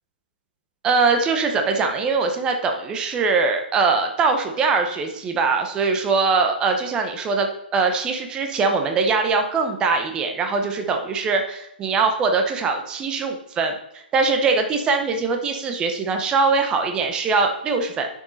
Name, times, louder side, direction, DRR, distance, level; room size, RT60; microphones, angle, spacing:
voice 1, 0.8-18.1, right 4 dB, 15° right, 4 dB, 0.9 m, -22 dB
9.3 x 6.5 x 4.1 m, 0.81 s
hypercardioid pair, 160°, 6 cm